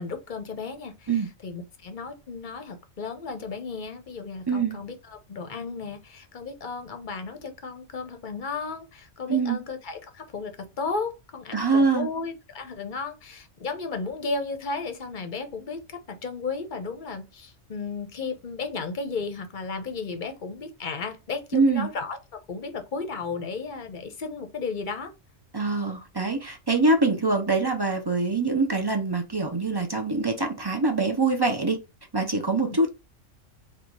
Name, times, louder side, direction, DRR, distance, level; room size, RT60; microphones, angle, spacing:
voice 1, 0.0-22.2 22.5-25.1 27.1-27.2 32.5-32.8, left 4 dB, 45° left, 0.9 m, -34 dB
voice 2, 4.5-4.8 9.3-9.6 11.5-12.1 21.5-21.9 25.5-31.8 32.1-32.9, right 3 dB, 25° right, 0.6 m, -24 dB
4.0 x 2.4 x 4.5 m
omnidirectional pair, 1.3 m